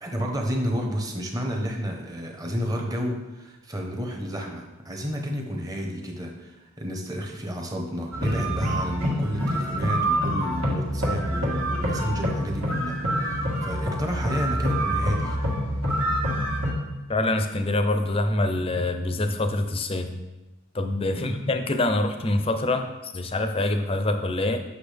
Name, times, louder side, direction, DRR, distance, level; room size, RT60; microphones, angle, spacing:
voice 1, 0.0-15.4 21.2-21.4, equal, 15° right, 1 dB, 0.9 m, -31 dB
sound 1, 8.1-16.7, equal, 80° right, 1.7 m, -26 dB
voice 2, 17.1-20.2 20.7-24.6, left 2 dB, 25° left, 7 dB, 0.5 m, -25 dB
8.1 x 6.0 x 3.4 m, 1.1 s
head